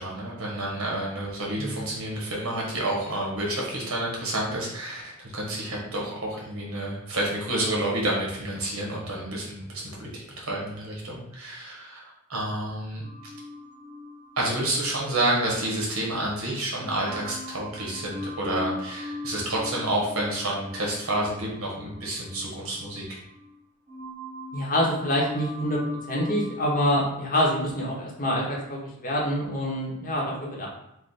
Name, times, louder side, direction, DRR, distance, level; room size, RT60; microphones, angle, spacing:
voice 1, 0.0-13.0 14.4-23.2, right 1 dB, 70° right, -3 dB, 1.1 m, -29 dB
voice 2, 1.6-1.9 24.5-25.8 26.1-30.7, equal, 40° left, -3 dB, 0.8 m, -26 dB
sound 1, 13.0-16.3 16.8-23.6 23.9-27.1, left 2 dB, 15° right, 1.4 m, -39 dB
3.3 x 2.1 x 3.9 m, 0.81 s
head